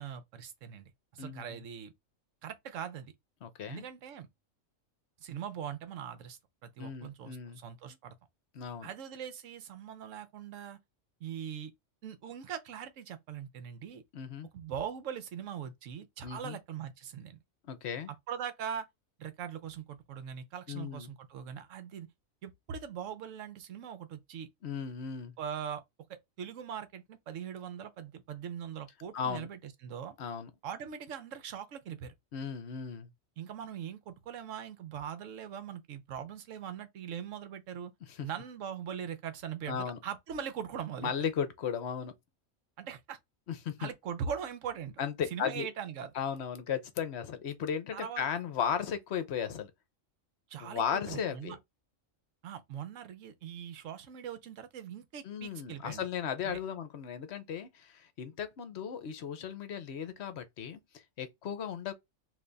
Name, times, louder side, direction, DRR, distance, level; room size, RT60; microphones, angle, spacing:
voice 1, 0.0-1.9 2.4-3.1 3.7-4.3 5.2-8.2 8.8-10.8 11.2-11.7 12.0-14.0 14.5-17.4 18.1-18.9 19.2-22.1 22.4-24.5 25.4-25.8 26.1-30.2 30.6-32.1 33.4-37.9 38.2-41.1 42.8-43.2 43.8-45.0 45.3-46.1 47.9-48.2 50.5-51.6 52.4-56.1 56.4-56.6, right 8 dB, 70° right, 1.1 m, -41 dB
voice 2, 1.2-1.6 3.4-3.8 6.8-7.6 8.5-8.9 14.1-14.5 16.2-16.6 17.7-18.1 20.7-21.1 24.6-25.3 29.1-29.5 30.2-30.5 32.3-33.1 39.7-40.0 41.0-42.1 43.5-43.9 45.0-45.7 46.1-49.7 50.6-51.6 55.2-61.9, left 7 dB, 60° left, 0.9 m, -36 dB
3.4 x 2.7 x 3.8 m
omnidirectional pair, 1.4 m